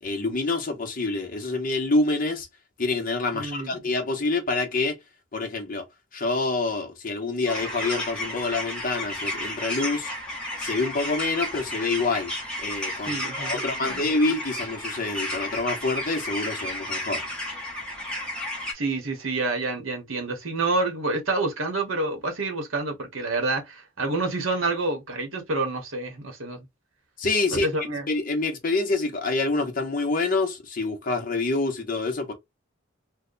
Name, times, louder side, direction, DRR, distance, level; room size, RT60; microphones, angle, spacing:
voice 1, 0.0-2.5 2.8-5.0 5.3-5.8 6.1-10.1 10.6-12.3 12.6-17.2 27.2-27.7 28.1-32.3, left 3 dB, 45° left, 0.8 m, -27 dB
voice 2, 3.3-3.8 13.1-14.0 18.7-26.6 27.5-28.1, right 3 dB, 85° right, 1.1 m, -28 dB
sound 1, 7.5-18.7, left 1 dB, 5° left, 0.9 m, -32 dB
2.8 x 2.2 x 3.8 m
head